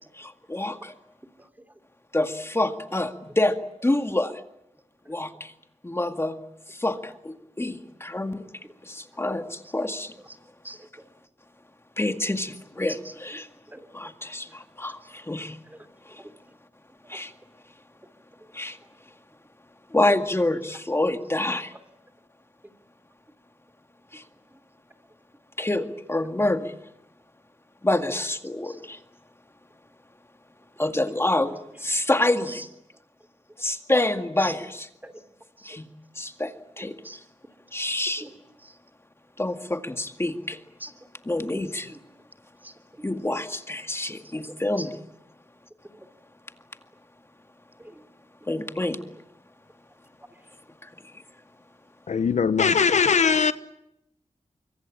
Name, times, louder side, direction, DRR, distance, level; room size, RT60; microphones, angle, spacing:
voice 1, 0.2-0.9 2.1-3.6 3.8-4.3 5.1-5.5 5.8-6.4 6.7-8.4 8.8-10.1 12.0-13.5 13.9-15.6 16.1-16.2 17.1-17.3 18.5-18.8 19.9-21.7 24.1-24.2 25.6-26.7 27.8-29.0 30.8-32.6 33.6-34.9 35.7-35.9 36.2-37.0 37.7-38.2 39.4-40.6 41.3-41.9 43.0-44.9 48.5-49.0 50.8-50.9, left 1 dB, 20° left, 2.0 m, -27 dB
voice 2, 10.2-11.1 12.9-13.9 15.7-16.3 17.0-17.2 24.5-24.6 28.6-28.8 32.5-32.7 34.4-34.6 35.0-35.1 35.6-35.8 36.8-37.2 38.2-38.3 38.6-38.8 40.8-40.9 41.9-42.0 42.6-43.0 44.2-44.9 45.9-46.1 47.8-48.0, right 1 dB, 15° right, 3.2 m, -44 dB
voice 3, 52.1-53.5, left 6 dB, 75° left, 1.0 m, -20 dB
25.0 x 24.0 x 8.7 m
wide cardioid pair, 75°, 12 cm